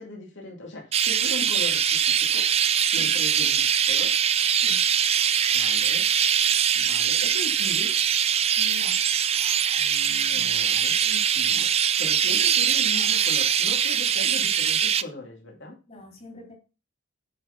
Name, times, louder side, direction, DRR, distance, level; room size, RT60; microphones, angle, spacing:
voice 1, 0.0-2.5 2.8-4.1 5.5-6.1 6.7-7.9 9.8-15.8, left 2 dB, 65° left, -1 dB, 2.7 m, -39 dB
Chirp tweet, 0.9-15.0, right 8 dB, 30° right, 0.5 m, -22 dB
voice 2, 4.6-4.9 8.6-9.0 10.1-10.5 15.8-16.5, left 3 dB, 35° left, 2 dB, 3.8 m, -44 dB
9.8 x 5.7 x 5.9 m, 0.31 s
head